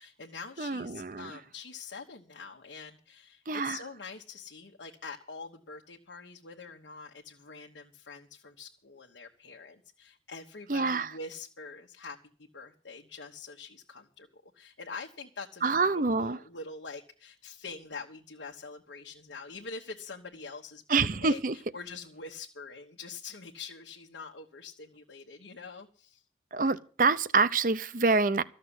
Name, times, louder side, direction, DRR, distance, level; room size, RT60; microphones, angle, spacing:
voice 1, 0.0-26.2, left 4 dB, 85° left, 1.2 m, -45 dB
voice 2, 0.6-1.4 3.5-3.8 10.7-11.1 15.6-16.4 20.9-21.5 26.5-28.4, right 4 dB, 45° right, 0.6 m, -26 dB
14.0 x 6.6 x 9.8 m
head